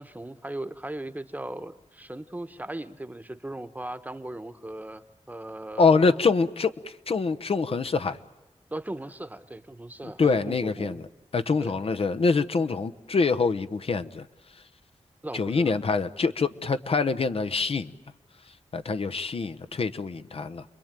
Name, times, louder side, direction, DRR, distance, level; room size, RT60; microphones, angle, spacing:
voice 1, 0.0-6.3 8.7-11.0 11.6-11.8 15.2-15.8, right 1 dB, 15° right, 11 dB, 1.1 m, -38 dB
voice 2, 5.8-8.2 10.0-11.0 11.3-14.2 15.3-17.9 18.7-20.6, left 4 dB, 60° left, 10 dB, 0.9 m, -25 dB
29.5 x 22.5 x 9.0 m, 1.0 s
wide cardioid pair, 120°, 11 cm